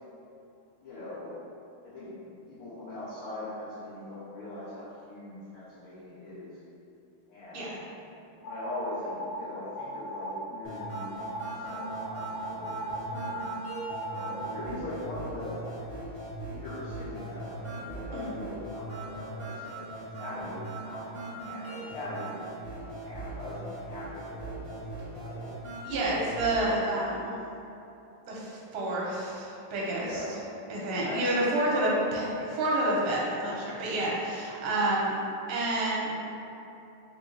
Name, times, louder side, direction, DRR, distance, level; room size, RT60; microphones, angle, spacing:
voice 1, 0.8-1.4 1.8-6.6 7.3-7.9 8.2-13.4 14.1-16.0 16.4-19.8 20.2-25.5 29.8-30.4 30.8-31.7, left 1 dB, 60° left, -12 dB, 1.7 m, -41 dB
sound 1, 8.4-9.4 9.7-10.4 10.8-11.4 11.8-14.5, right 1 dB, 80° left, 1.4 m, -37 dB
sound 2, 10.6-26.6, right 2 dB, 10° left, 0.6 m, -40 dB
voice 2, 25.8-27.3 28.3-30.2 30.7-35.2 35.5-36.1, right 1 dB, 75° right, -5 dB, 1.5 m, -29 dB
4.2 x 2.2 x 3.7 m, 2.8 s
omnidirectional pair, 2.4 m